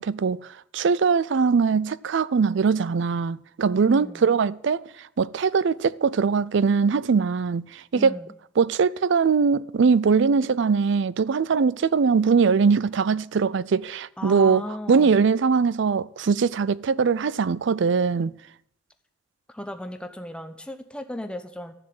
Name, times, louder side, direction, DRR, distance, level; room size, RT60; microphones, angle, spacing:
voice 1, 0.0-4.8 5.2-8.1 8.6-18.3, right 5 dB, 65° right, 0.4 m, -21 dB
voice 2, 3.9-4.3 7.9-8.3 14.2-15.2 19.5-21.7, equal, 5° left, 1.0 m, -36 dB
13.0 x 7.2 x 7.8 m
head